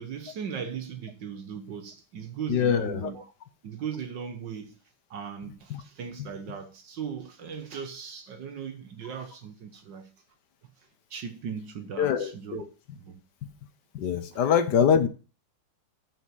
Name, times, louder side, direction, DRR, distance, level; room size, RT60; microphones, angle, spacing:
voice 1, 0.0-3.3 3.6-4.8 5.1-10.1 10.8-12.6 12.9-13.2 14.3-14.4, right 7 dB, 60° right, 1.6 m, -38 dB
voice 2, 2.5-3.1 5.7-5.8 12.0-12.6 13.9-15.1, left 7 dB, 60° left, 1.5 m, -24 dB
7.3 x 6.4 x 7.5 m
omnidirectional pair, 2.3 m